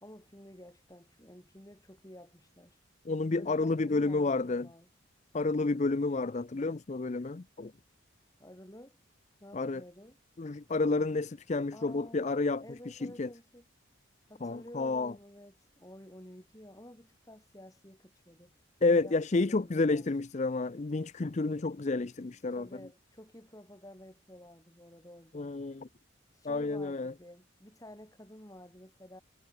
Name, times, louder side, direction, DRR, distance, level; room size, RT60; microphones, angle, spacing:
voice 1, 0.0-2.8 3.3-4.9 8.4-9.0 9.4-10.2 11.7-12.2 12.6-13.6 14.3-18.5 19.0-20.1 22.6-25.6 26.3-29.2, left 1 dB, 15° left, 3.9 m, -51 dB
voice 2, 3.1-4.7 5.3-7.7 9.5-9.8 10.4-13.3 14.4-15.1 18.8-22.7 25.3-25.9 26.4-27.1, left 3 dB, 35° left, 0.5 m, -30 dB
head